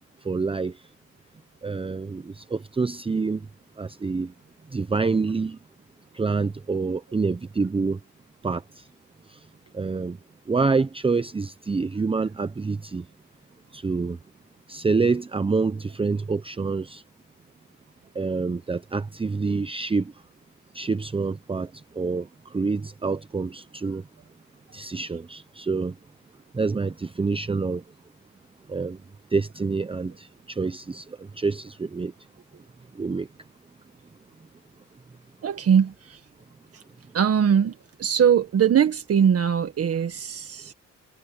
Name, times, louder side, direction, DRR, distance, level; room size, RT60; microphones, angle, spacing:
voice 1, 0.2-0.7 1.6-3.4 3.8-4.3 4.7-5.6 6.1-8.0 8.4-8.8 9.3-9.4 9.7-10.2 10.5-13.0 13.7-14.2 14.7-17.0 18.1-20.1 20.7-21.7 22.0-24.0 24.7-25.9 26.5-27.8 28.7-29.0 29.3-31.1 31.4-32.1 33.0-33.3, right 4 dB, 20° right, 0.8 m, -27 dB
voice 2, 35.4-36.2 36.7-36.8 37.1-40.7, right 8 dB, 50° right, 1.7 m, -21 dB
cardioid pair, 90°, 30 cm